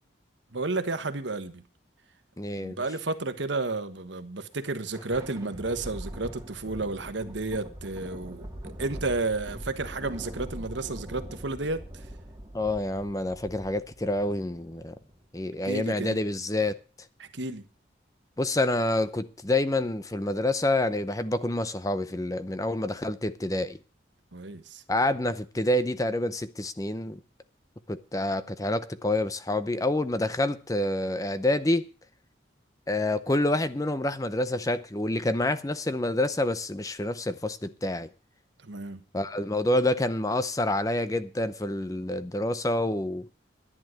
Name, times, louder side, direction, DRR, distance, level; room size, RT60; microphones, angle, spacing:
voice 1, 0.5-1.6 2.5-12.1 15.6-16.2 17.2-17.6 24.3-24.8 38.6-39.0, right 3 dB, 75° right, 1.3 m, -32 dB
voice 2, 2.4-2.8 12.5-14.9 15.3-16.8 18.4-23.8 24.9-27.2 27.9-31.9 32.9-38.1 39.1-43.3, left 1 dB, 20° left, 0.6 m, -27 dB
Thunder, 4.5-15.3, equal, 15° right, 2.2 m, -42 dB
11.0 x 10.5 x 6.3 m
head